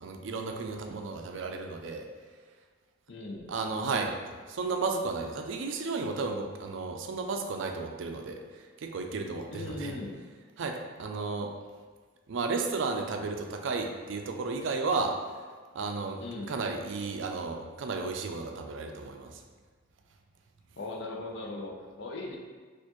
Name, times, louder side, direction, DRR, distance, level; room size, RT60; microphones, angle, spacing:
voice 1, 0.0-2.1 3.5-4.2 4.5-8.4 8.8-9.9 10.6-11.5 12.3-15.2 15.7-16.2 16.5-19.4, right 4 dB, 70° right, 4 dB, 0.4 m, -33 dB
voice 2, 3.1-3.5 9.5-10.2 16.2-16.6 20.8-22.4, left 2 dB, 60° left, 0 dB, 0.5 m, -38 dB
4.2 x 2.5 x 3.0 m, 1.4 s
head